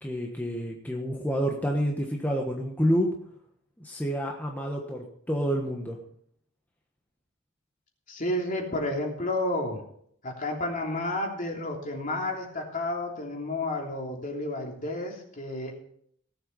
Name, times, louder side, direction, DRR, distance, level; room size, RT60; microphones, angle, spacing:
voice 1, 0.0-3.1 3.8-6.0, equal, 10° left, 0 dB, 1.3 m, -28 dB
voice 2, 8.1-9.8 10.2-15.7, left 1 dB, 40° left, 0 dB, 3.1 m, -31 dB
18.0 x 7.8 x 5.4 m, 0.68 s
head